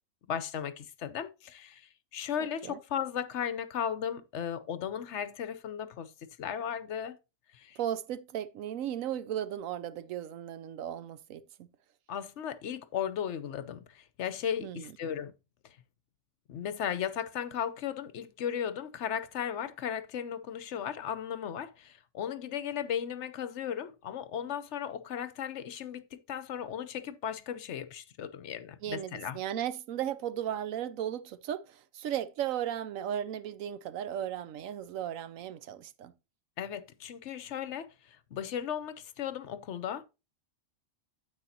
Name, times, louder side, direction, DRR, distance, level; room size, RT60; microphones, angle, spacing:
voice 1, 0.3-6.1 6.4-7.2 7.5-7.8 12.1-15.3 15.6-15.8 16.5-29.4 36.6-40.0, left 9 dB, 65° left, 0.9 m, -36 dB
voice 2, 7.8-11.7 14.6-14.9 28.8-36.1, right 10 dB, 85° right, 1.1 m, -36 dB
9.8 x 7.7 x 2.8 m
omnidirectional pair, 1.3 m